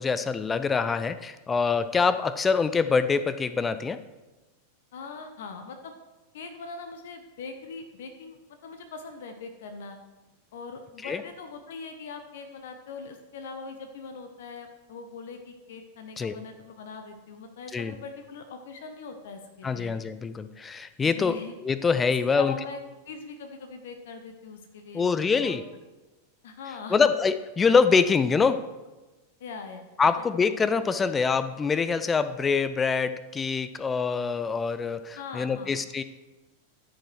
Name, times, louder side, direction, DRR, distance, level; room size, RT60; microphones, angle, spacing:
voice 1, 0.0-4.0 11.0-11.2 16.2-16.3 17.7-17.9 19.6-21.4 21.6-22.5 24.9-25.6 26.9-28.6 30.0-36.0, left 5 dB, 15° left, 13 dB, 0.5 m, -25 dB
voice 2, 4.9-5.9 6.3-10.0 10.5-20.0 21.0-21.5 22.3-22.8 23.0-25.1 25.4-25.6 26.4-27.1 29.4-30.1 35.1-35.7, left 4 dB, 55° left, 7 dB, 0.9 m, -41 dB
14.0 x 5.3 x 4.6 m, 1.1 s
figure-of-eight pair, 90°, 0 cm